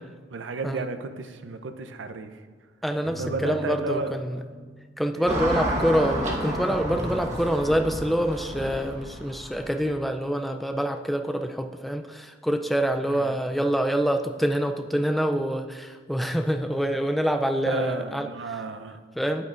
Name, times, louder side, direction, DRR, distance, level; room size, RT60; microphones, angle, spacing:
voice 1, 0.3-2.4 3.2-4.2 5.1-5.3 13.1-13.4 17.7-19.0, right 3 dB, 80° right, 9 dB, 0.6 m, -33 dB
voice 2, 2.8-4.4 5.0-18.3 19.2-19.5, equal, ahead, 5 dB, 0.3 m, -26 dB
sound 1, 3.0-14.0, left 2 dB, 50° left, 1.4 m, -47 dB
Car passing by / Traffic noise roadway noise, 5.3-9.9, right 1 dB, 40° right, 1.2 m, -30 dB
9.3 x 9.2 x 2.5 m, 1.5 s
head